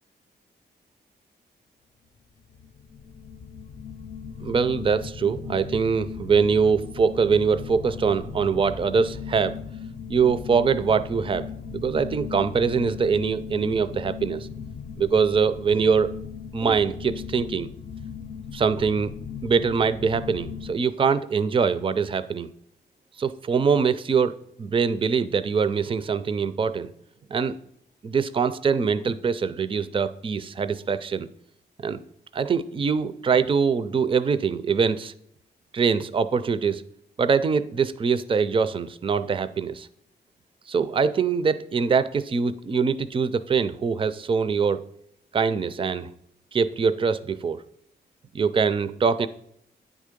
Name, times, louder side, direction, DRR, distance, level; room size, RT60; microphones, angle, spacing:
sound 1, 2.5-20.7, left 7 dB, 60° left, 0.5 m, -37 dB
voice 1, 4.4-9.6 10.1-14.5 15.0-16.1 16.5-17.7 18.5-19.1 19.4-22.5 23.2-26.9 27.3-27.6 28.0-31.3 31.8-32.0 32.3-35.1 35.7-36.8 37.2-39.9 40.7-44.8 45.3-46.1 46.5-47.6 48.3-49.3, right 5 dB, 30° right, 13 dB, 0.4 m, -23 dB
9.2 x 3.7 x 5.1 m, 0.73 s
cardioid pair, 95°, 18 cm